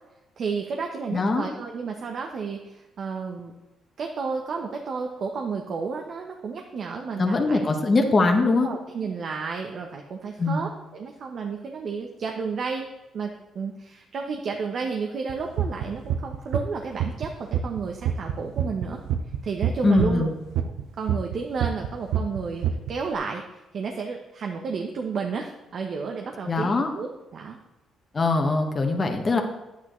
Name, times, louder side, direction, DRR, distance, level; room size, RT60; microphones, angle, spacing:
voice 1, 0.4-3.5 4.0-7.7 8.6-12.9 13.1-19.0 19.4-20.3 20.6-27.6, right 5 dB, 60° right, 2 dB, 0.9 m, -32 dB
voice 2, 1.1-1.5 7.2-8.7 10.4-10.6 19.8-20.3 26.5-26.9 28.1-29.4, left 3 dB, 35° left, 3 dB, 1.1 m, -22 dB
sound 1, 15.3-17.3 17.5-21.3 21.6-22.9, right 10 dB, 90° right, 0.6 m, -26 dB
9.9 x 8.5 x 3.1 m, 1.0 s
cardioid pair, 90°, 0 cm